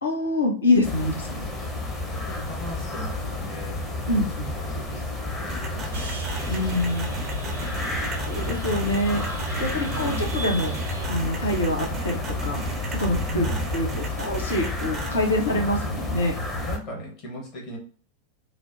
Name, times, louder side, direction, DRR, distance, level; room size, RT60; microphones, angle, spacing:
voice 1, 0.0-1.5 4.1-4.5 6.5-7.1 8.3-9.2 9.6-10.7 11.1-12.6 12.9-13.5 13.7-16.3, left 1 dB, 70° left, 0 dB, 0.7 m, -25 dB
sound 1, 0.8-16.8, left 2 dB, 20° left, 0.7 m, -31 dB
voice 2, 2.3-3.8 4.7-5.1 5.4-6.7 7.4-7.6 9.7-10.3 13.3-13.6 16.6-17.8, equal, 45° left, -2 dB, 1.0 m, -38 dB
sound 2, 5.5-15.1, right 2 dB, 25° right, 0.5 m, -35 dB
sound 3, 5.9-16.3, right 2 dB, 75° right, 0.6 m, -37 dB
3.2 x 2.0 x 2.5 m, 0.43 s
figure-of-eight pair, 90°, 0 cm